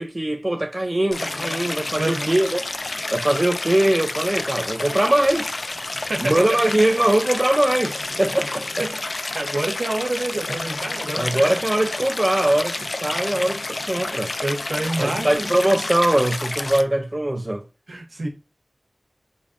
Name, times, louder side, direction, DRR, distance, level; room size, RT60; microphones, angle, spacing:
voice 1, 0.0-2.6 3.1-5.6 6.2-8.7 11.1-14.3 15.0-17.6, right 1 dB, 30° right, 0.5 m, -21 dB
Stream, 1.1-16.8, left 2 dB, 65° left, 0.3 m, -29 dB
voice 2, 2.0-2.3 5.9-6.4 8.8-11.5 13.1-13.2 14.4-15.5 17.9-18.3, right 2 dB, 85° right, 1.0 m, -28 dB
5.2 x 2.2 x 2.5 m
wide cardioid pair, 60°, 0 cm